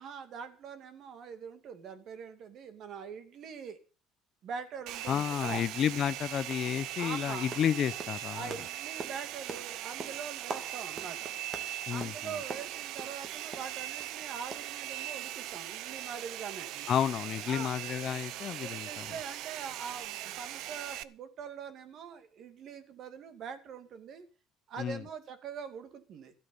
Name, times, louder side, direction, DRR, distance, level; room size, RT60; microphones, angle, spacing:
voice 1, 0.0-3.8 4.4-5.7 7.0-7.7 8.3-11.3 11.9-16.7 17.5-17.7 18.5-24.2 24.7-26.3, right 6 dB, 50° right, 10 dB, 2.3 m, -43 dB
Domestic sounds home sounds, 4.9-21.0, right 13 dB, 65° right, 0.8 m, -40 dB
voice 2, 5.1-8.6 11.9-12.3 16.9-19.1 24.8-25.0, left 9 dB, 45° left, 15 dB, 0.8 m, -31 dB
sound 1, 6.5-6.8 7.0-14.2 14.5-15.3 15.5-15.7 16.0-16.1, right 4 dB, 30° right, 2.3 m, -45 dB
14.0 x 8.2 x 7.1 m, 0.37 s
cardioid pair, 140°, 0 cm